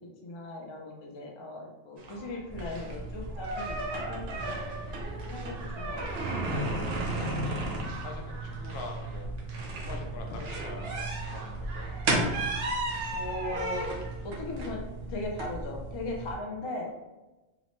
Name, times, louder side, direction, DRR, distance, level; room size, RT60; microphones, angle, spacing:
voice 1, 0.0-4.5 5.2-6.3 13.1-13.9 14.2-16.9, left 2 dB, 50° left, 0 dB, 0.3 m, -38 dB
sound 1, 2.0-14.7, right 2 dB, 50° right, 0.6 m, -49 dB
sound 2, 2.5-16.4, right 2 dB, 75° right, 0.8 m, -34 dB
voice 2, 4.3-5.1 6.5-6.8 7.1-9.3 9.8-12.0, left 3 dB, 75° left, 2 dB, 0.8 m, -44 dB
2.8 x 2.0 x 3.0 m, 1.1 s
omnidirectional pair, 1.1 m